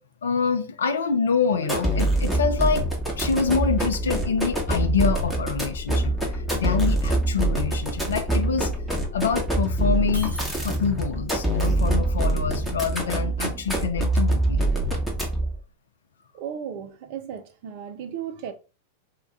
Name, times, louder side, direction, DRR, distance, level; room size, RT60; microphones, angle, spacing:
voice 1, 0.2-2.9 3.2-8.7 9.1-10.3 10.6-14.7, left 5 dB, 65° left, 0.4 m, -26 dB
sound 1, 1.6-15.6, right 1 dB, 5° left, 0.9 m, -25 dB
Shatter, 10.1-11.2, left 1 dB, 85° left, 0.8 m, -40 dB
voice 2, 16.3-18.5, right 8 dB, 45° right, 0.5 m, -35 dB
2.2 x 2.1 x 3.8 m
figure-of-eight pair, 90°, 0 cm